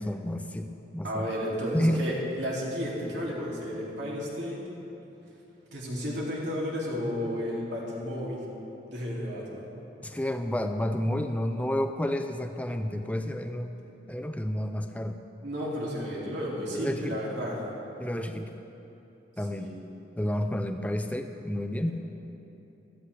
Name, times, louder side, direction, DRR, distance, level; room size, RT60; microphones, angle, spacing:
voice 1, 0.0-1.3 1.7-2.1 10.0-13.7 14.1-15.2 16.7-17.2 18.0-18.5 19.4-19.7 20.2-21.9, left 1 dB, 10° left, 6 dB, 0.5 m, -30 dB
voice 2, 1.0-4.6 5.7-8.4 8.9-9.7 15.4-17.6 19.5-19.7 21.8-21.9, equal, 75° right, -5 dB, 2.8 m, -32 dB
16.0 x 13.0 x 3.4 m, 2.9 s
head